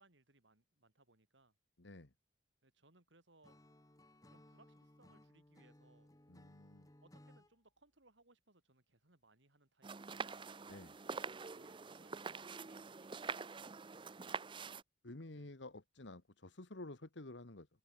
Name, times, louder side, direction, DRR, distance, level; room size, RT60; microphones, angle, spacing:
voice 1, 0.0-1.5 2.6-3.6 4.3-6.1 7.0-10.4 11.1-14.4 15.3-15.5, right 2 dB, 75° right, 4.3 m, -69 dB
voice 2, 1.8-2.1 6.3-6.9 10.7-11.0 15.0-17.7, left 2 dB, 75° left, 1.7 m, -51 dB
Acoustic guitar / Strum, 3.4-7.5, left 1 dB, 20° left, 1.5 m, -62 dB
sound 1, 9.8-14.8, right 5 dB, 25° right, 0.6 m, -45 dB
head